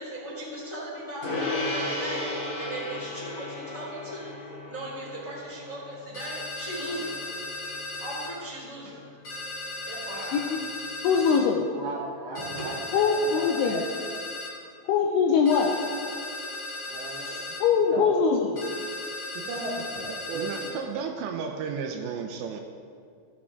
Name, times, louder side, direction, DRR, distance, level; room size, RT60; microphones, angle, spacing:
voice 1, 0.0-7.1 7.6-9.2 9.8-10.4 11.2-11.3 12.4-12.7 16.7-17.4, right 1 dB, 10° left, -6 dB, 1.9 m, -38 dB
Gong, 1.2-10.9, left 2 dB, 60° left, 1.0 m, -36 dB
sound 1, 6.1-8.3 9.2-11.4 12.3-14.5 15.5-17.6 18.6-20.7, left 2 dB, 40° left, 3.7 m, -36 dB
voice 2, 10.2-10.7 11.0-11.7 12.9-13.8 14.8-15.7 17.6-18.5, left 6 dB, 85° left, 1 dB, 2.4 m, -22 dB
voice 3, 11.7-13.8 16.9-17.6 17.9-18.1 19.3-21.1, right 2 dB, 65° right, -3 dB, 2.8 m, -37 dB
voice 4, 20.1-22.6, right 6 dB, 85° right, 4 dB, 2.8 m, -33 dB
14.5 x 8.4 x 3.7 m, 2.2 s
omnidirectional pair, 5.4 m